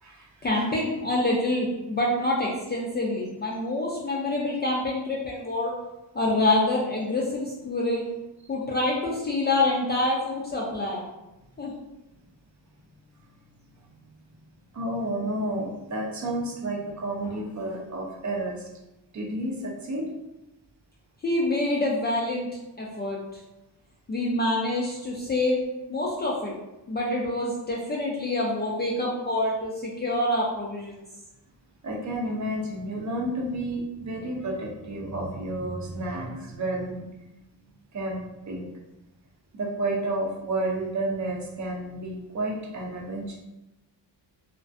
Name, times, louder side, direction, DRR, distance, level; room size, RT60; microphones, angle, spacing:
voice 1, 0.4-5.7 6.1-8.1 8.5-11.0 11.6-11.7 21.2-22.5 22.8-23.4 24.1-25.6 25.9-26.5 26.9-31.0, left 2 dB, 25° left, -4 dB, 0.3 m, -26 dB
voice 2, 14.7-18.7 19.1-20.1 31.8-37.1 37.9-38.7 39.5-43.4, right 1 dB, 40° right, -1 dB, 0.5 m, -31 dB
2.4 x 2.1 x 2.4 m, 0.96 s
cardioid pair, 105°, 45 cm